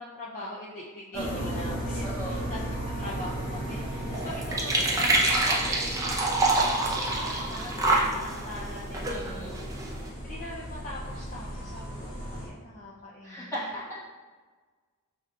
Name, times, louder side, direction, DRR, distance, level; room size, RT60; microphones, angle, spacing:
voice 1, 0.0-2.6 3.0-9.7 10.2-13.7, left 1 dB, 35° left, -5 dB, 0.5 m, -42 dB
sound 1, 1.1-12.5, right 1 dB, 60° left, 1.1 m, -36 dB
voice 2, 1.1-2.5 6.2-6.6 9.1-9.5 13.2-14.0, right 1 dB, 15° left, -7 dB, 1.2 m, -38 dB
sound 2, 2.9-10.1, right 2 dB, 15° right, 0.6 m, -28 dB
5.9 x 3.3 x 2.4 m, 1.4 s
head